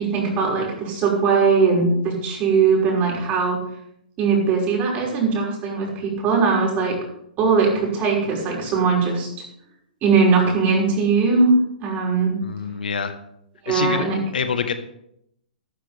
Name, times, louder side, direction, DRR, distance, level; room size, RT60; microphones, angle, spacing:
voice 1, 0.0-3.6 4.2-7.0 7.4-9.3 10.0-11.5 11.8-12.4 13.6-14.2, right 5 dB, 30° right, -2 dB, 5.8 m, -20 dB
voice 2, 12.4-13.1 13.7-14.0 14.3-14.7, left 6 dB, 75° left, 9 dB, 1.3 m, -25 dB
13.5 x 13.0 x 3.5 m, 0.76 s
hypercardioid pair, 120°, 5 cm